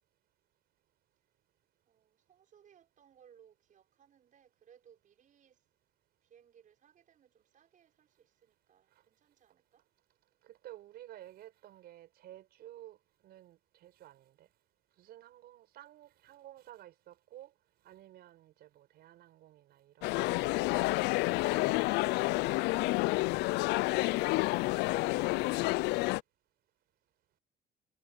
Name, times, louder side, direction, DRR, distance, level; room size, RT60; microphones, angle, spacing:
voice 1, 1.9-5.6 6.2-9.8 24.1-24.4, right 8 dB, 50° right, 6.3 m, -64 dB
voice 2, 10.4-13.0 13.2-14.5 15.0-17.5 17.8-20.5 21.2-22.7 24.0-25.9, right 13 dB, 70° right, 5.3 m, -54 dB
sound 1, 20.0-26.2, left 22 dB, 90° left, 0.4 m, -29 dB
cardioid pair, 110°, 17 cm